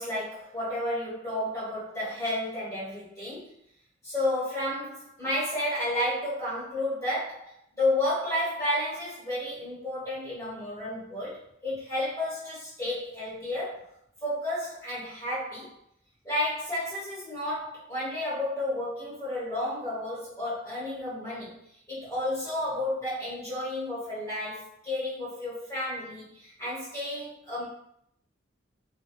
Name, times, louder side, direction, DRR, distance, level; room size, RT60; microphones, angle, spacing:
voice 1, 0.0-3.5 4.0-11.4 11.6-13.8 14.2-15.7 16.2-21.5 21.9-27.7, left 1 dB, 15° left, -9 dB, 1.1 m, -31 dB
2.8 x 2.1 x 2.3 m, 0.74 s
head